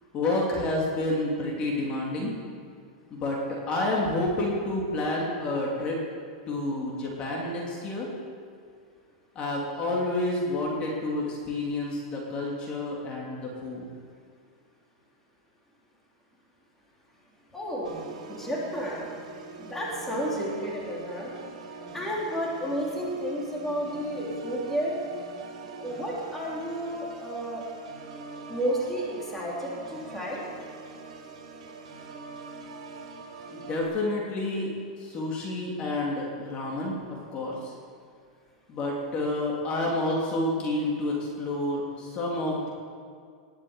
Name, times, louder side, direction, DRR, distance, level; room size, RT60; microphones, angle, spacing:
voice 1, 0.1-2.3 3.1-6.0 6.5-8.1 9.3-13.9 33.5-34.7 35.0-37.7 38.7-42.7, left 2 dB, 30° left, -3 dB, 3.1 m, -29 dB
voice 2, 17.5-18.0 18.3-19.1 19.6-21.3 21.9-25.0 25.8-27.6 28.5-30.4, equal, 10° left, -5 dB, 3.3 m, -31 dB
Organ, 17.8-33.8, right 3 dB, 80° right, 3.3 m, -43 dB
20.0 x 7.3 x 8.2 m, 2.2 s
supercardioid pair, 150°, 4 cm